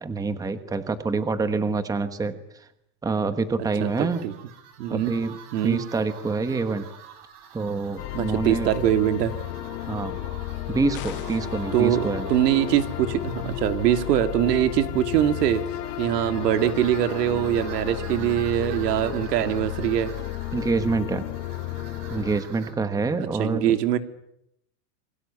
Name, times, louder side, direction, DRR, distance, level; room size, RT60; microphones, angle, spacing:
voice 1, 0.0-2.7 3.0-4.2 4.9-5.4 5.6-6.9 7.5-8.7 9.9-10.2 10.7-12.3 20.5-21.3 22.1-23.8, right 3 dB, 5° right, 10 dB, 1.2 m, -26 dB
sound 1, 3.7-22.7, right 8 dB, 45° right, 6.1 m, -46 dB
voice 2, 3.8-4.3 4.8-5.1 5.5-5.8 8.1-9.3 11.7-15.6 16.0-20.1 23.4-24.0, right 12 dB, 75° right, 8 dB, 2.7 m, -23 dB
sound 2, 8.0-22.4, left 14 dB, 70° left, 3.1 m, -33 dB
sound 3, 10.9-11.7, left 15 dB, 40° left, 2.1 m, -41 dB
27.5 x 22.5 x 8.5 m, 0.79 s
supercardioid pair, 160°, 48 cm